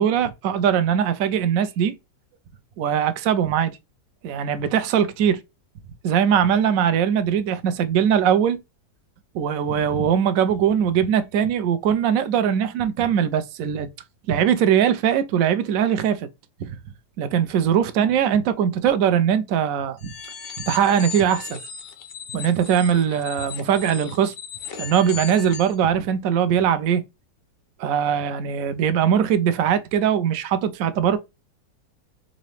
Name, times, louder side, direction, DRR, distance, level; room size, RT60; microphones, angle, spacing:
voice 1, 0.0-2.0 2.8-3.7 4.2-5.4 6.0-8.6 9.3-13.9 14.3-16.3 16.6-16.8 17.2-20.1 20.7-21.6 22.3-24.3 24.8-27.0 27.8-31.2, right 8 dB, 70° right, 0.8 m, -21 dB
sound 1, 20.0-25.8, left 6 dB, 85° left, 0.5 m, -36 dB
4.0 x 2.6 x 3.1 m
omnidirectional pair, 1.8 m